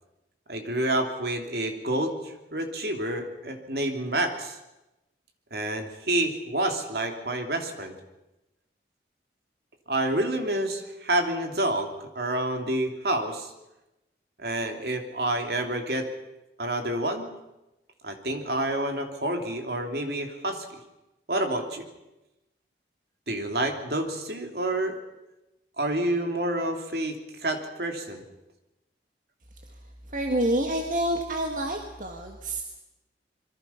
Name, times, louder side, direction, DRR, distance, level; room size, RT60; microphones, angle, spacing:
voice 1, 0.5-4.6 5.5-7.9 9.9-13.5 14.4-16.1 16.6-17.3 18.0-20.6 21.3-21.8 23.3-25.0 25.8-28.2, right 1 dB, 65° right, 5 dB, 2.9 m, -28 dB
voice 2, 30.1-32.6, right 1 dB, 45° right, 3 dB, 1.7 m, -27 dB
26.0 x 23.0 x 5.8 m, 0.98 s
head